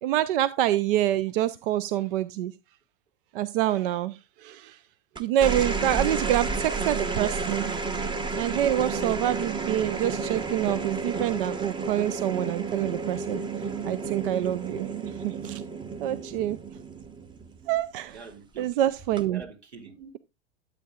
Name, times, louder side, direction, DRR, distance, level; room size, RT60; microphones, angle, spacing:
voice 1, 0.0-2.5 3.3-4.8 5.2-7.7 8.3-13.4 13.8-15.6 16.0-16.6 17.7-18.2 18.6-19.4, right 12 dB, 55° right, 0.6 m, -26 dB
sound 1, 5.2-17.8 19.0-19.4, right 4 dB, 15° right, 0.8 m, -31 dB
voice 2, 5.5-6.2 6.5-6.6 10.4-10.5 18.1-18.8 19.3-20.1, right 4 dB, 75° right, 2.4 m, -44 dB
12.5 x 8.2 x 2.4 m
figure-of-eight pair, 95°, 33 cm